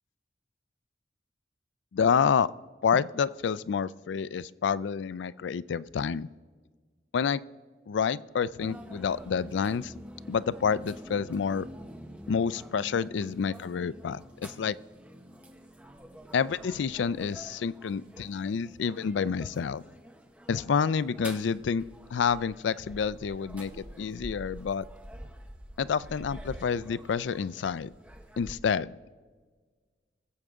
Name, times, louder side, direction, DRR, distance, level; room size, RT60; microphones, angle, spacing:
voice 1, 1.9-2.5 2.8-6.3 7.1-7.4 7.9-9.9 10.3-11.7 12.3-14.8 16.3-19.8 20.5-21.8 22.1-24.8 25.8-27.9 28.4-29.0, left 6 dB, 85° left, 18 dB, 0.4 m, -28 dB
sound 1, 8.6-28.5, equal, 10° right, 0.9 m, -47 dB
21.0 x 7.7 x 3.6 m, 1.5 s
head